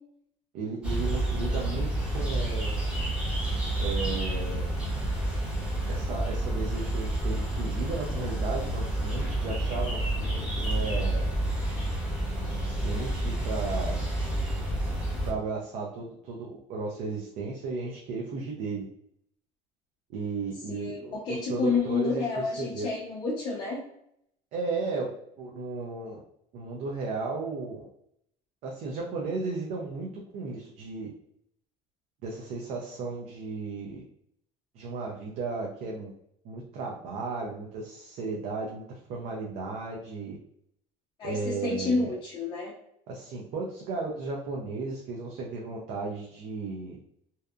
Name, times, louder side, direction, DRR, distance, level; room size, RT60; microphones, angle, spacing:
voice 1, 0.5-2.9 3.8-4.7 5.9-11.3 12.4-14.0 15.3-18.9 20.1-22.9 24.5-26.2 26.5-27.9 28.6-30.1 30.3-31.1 32.2-34.0 34.7-36.1 36.4-40.4 41.2-42.1 43.1-47.0, right 3 dB, 60° right, -1 dB, 0.5 m, -35 dB
sound 1, 0.8-15.3, right 1 dB, 10° right, 0.7 m, -29 dB
voice 2, 20.7-23.8 41.2-42.7, left 4 dB, 35° left, -4 dB, 0.5 m, -29 dB
2.7 x 2.3 x 2.3 m, 0.73 s
cardioid pair, 160°, 13 cm